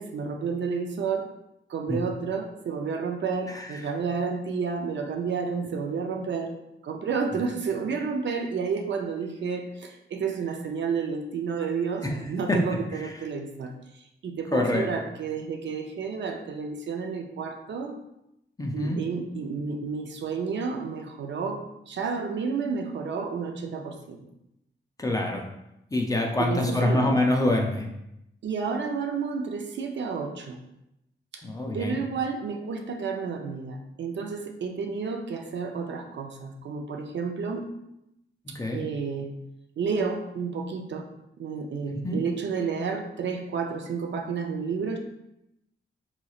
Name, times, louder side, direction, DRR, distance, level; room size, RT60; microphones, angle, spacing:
voice 1, 0.0-1.3 1.7-6.5 6.8-18.0 18.7-24.3 26.4-27.1 28.4-30.6 31.3-31.4 31.7-37.7 38.7-39.3 39.8-41.1 41.4-45.0, right 5 dB, 65° right, 3 dB, 0.5 m, -31 dB
voice 2, 3.5-3.9 12.0-12.2 12.5-12.6 12.9-13.1 14.5-14.9 18.6-19.0 25.0-25.5 25.9-27.9 31.4-32.0 38.5-38.8 41.9-42.2, left 1 dB, 15° left, 0 dB, 0.4 m, -26 dB
3.8 x 3.1 x 2.3 m, 0.85 s
wide cardioid pair, 155°, 20 cm